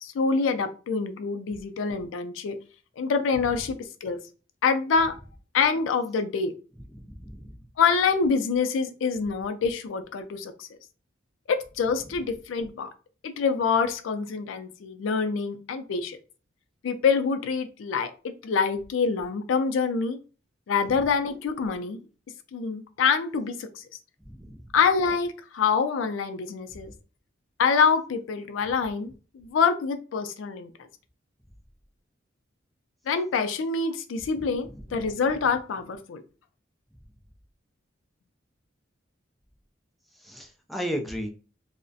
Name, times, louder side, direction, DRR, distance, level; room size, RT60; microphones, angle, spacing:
voice 1, 0.0-2.6 3.0-4.2 4.6-5.1 5.5-6.5 7.8-10.7 11.5-12.9 13.2-16.2 16.8-20.2 20.7-22.0 22.5-23.8 24.7-26.9 27.6-30.7 33.1-36.2, left 5 dB, 85° left, 8 dB, 0.4 m, -26 dB
voice 2, 6.9-7.6 20.9-21.0 24.3-24.6 34.9-35.0 40.2-41.3, equal, ahead, 2 dB, 0.3 m, -35 dB
2.4 x 2.0 x 2.5 m, 0.36 s
head